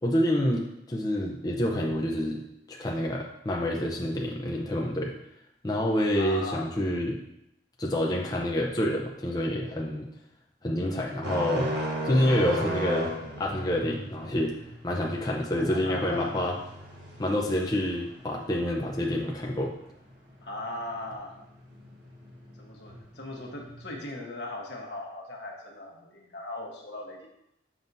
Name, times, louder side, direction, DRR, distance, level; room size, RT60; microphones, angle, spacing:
voice 1, 0.0-0.6 0.9-2.4 2.7-5.1 5.6-7.2 7.8-10.1 10.6-11.7 12.0-14.5 14.8-16.6 17.2-19.7, left 1 dB, 20° left, -2 dB, 0.6 m, -27 dB
voice 2, 6.1-6.7 15.5-16.5 20.4-21.3 22.6-27.3, left 2 dB, 75° left, 0 dB, 1.2 m, -38 dB
sound 1, 11.2-23.9, right 1 dB, 85° right, 1.6 m, -37 dB
7.2 x 6.0 x 2.7 m, 0.82 s
head